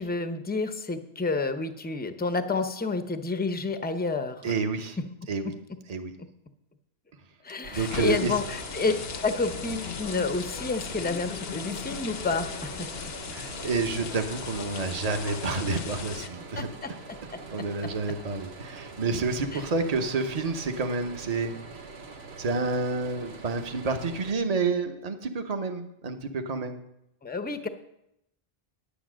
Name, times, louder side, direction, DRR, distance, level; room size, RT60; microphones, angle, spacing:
voice 1, 0.0-4.6 5.0-5.1 7.4-8.9 9.2-12.9 16.6-16.9 19.5-19.6 27.2-27.7, left 3 dB, 10° left, 8 dB, 0.6 m, -30 dB
voice 2, 4.4-5.0 5.3-5.6 5.9-6.1 7.7-8.3 13.3-16.7 17.5-21.5 22.4-26.8, right 4 dB, 40° right, 6 dB, 1.0 m, -29 dB
sound 1, 7.6-24.3, right 3 dB, 80° right, 1.3 m, -44 dB
sound 2, 7.7-16.3, left 6 dB, 70° left, 1.0 m, -37 dB
10.0 x 9.3 x 6.2 m, 0.81 s
omnidirectional pair, 1.1 m